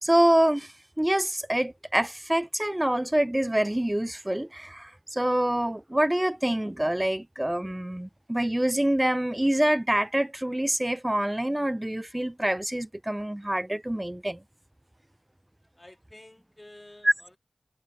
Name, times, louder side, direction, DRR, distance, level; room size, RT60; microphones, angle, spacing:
voice 1, 0.0-14.4 17.0-17.1, right 1 dB, 15° right, 0.4 m, -26 dB
voice 2, 15.8-17.4, left 1 dB, 25° left, 2.2 m, -51 dB
wide cardioid pair, 60°, 0 cm